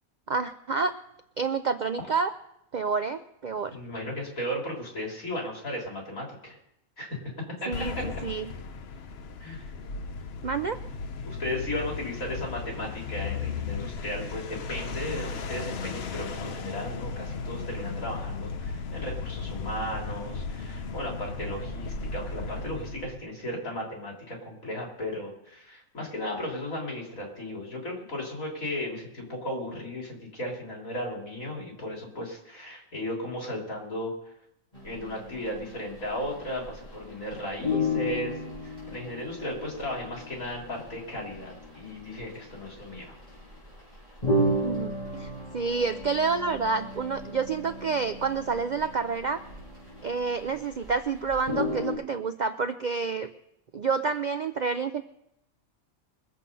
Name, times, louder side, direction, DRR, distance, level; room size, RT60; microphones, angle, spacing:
voice 1, 0.3-1.0 1.4-2.3 2.7-3.8 7.7-8.0 8.2-8.5 10.4-10.8 44.6-49.4 50.0-53.3 53.7-55.0, right 5 dB, 60° right, 10 dB, 0.4 m, -29 dB
voice 2, 3.7-6.6 7.0-7.2 7.6-7.7 8.0-8.1 9.4-9.7 11.2-34.1 34.8-43.1, left 1 dB, 80° left, -1 dB, 4.1 m, -35 dB
sound 1, 7.7-23.2, left 4 dB, 55° left, 0.9 m, -36 dB
sound 2, 34.7-37.0 37.3-37.4 37.6-50.9 51.2-51.9, left 1 dB, 30° left, 6.2 m, -34 dB
22.5 x 7.7 x 5.4 m, 0.80 s
omnidirectional pair, 1.4 m